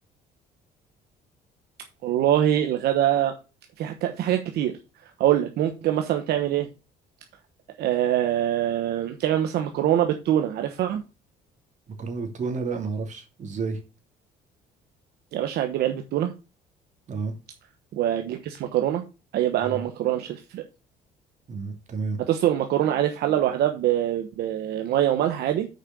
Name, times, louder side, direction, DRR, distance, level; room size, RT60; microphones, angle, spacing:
voice 1, 2.0-3.3 3.8-4.7 5.2-6.7 7.8-11.0 15.3-16.3 17.9-19.0 19.3-20.6 22.3-25.7, right 11 dB, 75° right, 6 dB, 1.1 m, -24 dB
voice 2, 12.0-13.8 17.1-17.3 19.6-19.8 21.5-22.2, right 4 dB, 45° right, 4 dB, 2.7 m, -31 dB
6.5 x 5.1 x 6.8 m, 0.30 s
cardioid pair, 110°, 17 cm